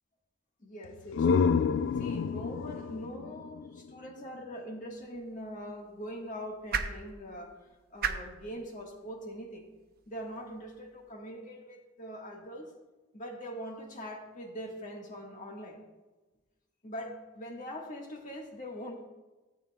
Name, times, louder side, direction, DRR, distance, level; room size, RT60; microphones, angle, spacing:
voice 1, 0.6-1.6 1.9-9.7 10.1-12.7 13.1-15.8 16.8-19.0, equal, 45° left, 1 dB, 1.6 m, -42 dB
sound 1, 0.8-4.5, left 5 dB, 75° left, 0.3 m, -29 dB
sound 2, 4.9-11.1, right 6 dB, 55° right, 0.6 m, -41 dB
15.0 x 8.3 x 2.4 m, 1.2 s
head